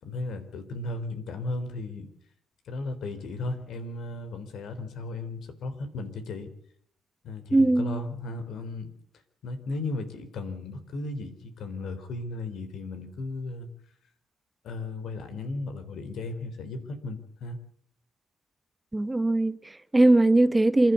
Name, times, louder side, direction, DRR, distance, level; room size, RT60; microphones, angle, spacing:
voice 1, 0.0-2.1 2.7-6.5 7.2-8.9 9.4-13.7 14.6-17.6, left 2 dB, 70° left, 3.8 m, -35 dB
voice 2, 7.5-8.0 18.9-20.9, right 2 dB, 15° right, 0.9 m, -21 dB
27.5 x 12.0 x 8.3 m
cardioid pair, 90°, 0 cm